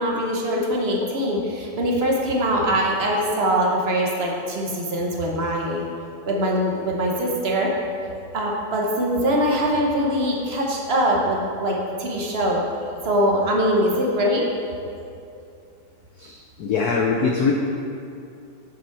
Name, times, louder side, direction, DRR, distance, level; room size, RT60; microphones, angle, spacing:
voice 1, 0.0-5.8 6.3-7.7 8.3-12.6 13.0-14.5, equal, 40° right, -1 dB, 0.9 m, -22 dB
voice 2, 16.2-17.5, left 5 dB, 75° left, 0 dB, 0.8 m, -23 dB
7.4 x 7.2 x 4.6 m, 2.5 s
omnidirectional pair, 2.4 m